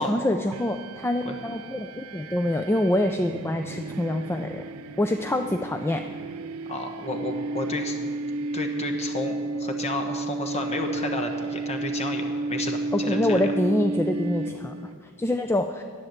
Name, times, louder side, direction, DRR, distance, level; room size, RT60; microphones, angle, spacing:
voice 1, 0.0-4.6 5.0-6.0 12.9-14.7 15.2-15.8, left 1 dB, 10° left, 6 dB, 0.3 m, -25 dB
sound 1, 0.5-15.0, right 2 dB, 75° right, 0.4 m, -32 dB
voice 2, 6.7-8.0 8.5-13.5, left 2 dB, 30° left, 4 dB, 1.2 m, -32 dB
11.0 x 9.3 x 7.2 m, 2.1 s
head